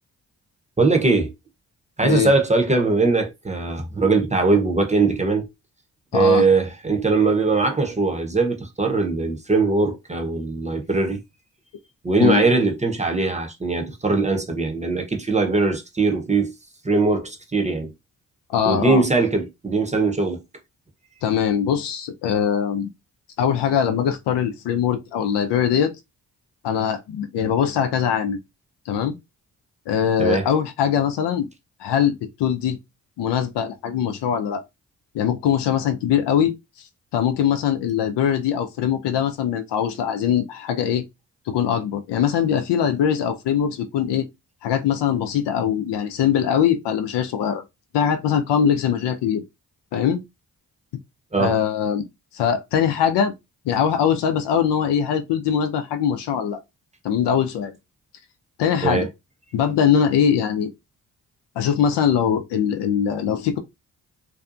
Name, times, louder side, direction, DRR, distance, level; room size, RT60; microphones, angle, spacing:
voice 1, 0.8-1.3 2.0-5.5 6.1-11.2 12.0-16.5 16.8-17.9 18.6-20.4 30.2-30.5 51.3-51.6 58.8-59.1, right 3 dB, 15° right, 0.7 m, -21 dB
voice 2, 6.1-6.5 12.2-12.4 18.5-19.0 21.2-22.9 23.4-25.9 26.6-28.4 28.9-29.1 29.9-31.5 31.8-32.8 33.2-34.6 35.1-36.5 37.1-41.0 41.5-44.2 44.6-47.6 47.9-49.4 49.9-50.2 51.4-52.0 52.3-53.3 53.7-56.6 57.0-57.7 58.6-59.1 59.5-60.7 61.6-63.6, left 8 dB, 75° left, 0.6 m, -22 dB
2.6 x 2.3 x 2.5 m
supercardioid pair, 45°, 41 cm